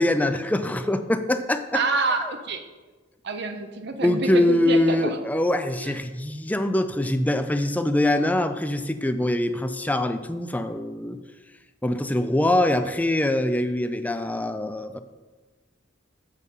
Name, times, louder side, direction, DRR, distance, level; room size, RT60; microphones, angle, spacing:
voice 1, 0.0-1.8 4.0-11.2 11.8-15.0, left 1 dB, 10° left, 9 dB, 0.4 m, -23 dB
voice 2, 1.7-2.6 3.2-5.2 5.8-5.9, right 3 dB, 60° right, 6 dB, 0.6 m, -27 dB
7.0 x 6.5 x 5.3 m, 1.2 s
head